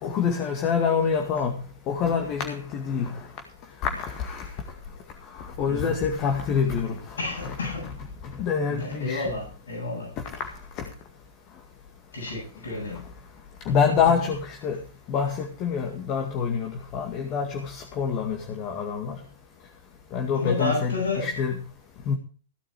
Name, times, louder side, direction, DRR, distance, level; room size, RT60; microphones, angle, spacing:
voice 1, 0.0-1.5 1.9-3.2 3.8-4.5 5.3-7.2 8.4-9.3 10.8-10.9 13.7-14.8 15.1-19.2 20.1-21.5 22.1-22.2, left 6 dB, 30° left, 4 dB, 2.0 m, -26 dB
voice 2, 7.2-7.9 8.7-10.2 12.1-13.0 20.3-21.3, left 3 dB, 70° left, -2 dB, 7.8 m, -31 dB
16.5 x 8.7 x 4.7 m, 0.41 s
figure-of-eight pair, 110°, 0 cm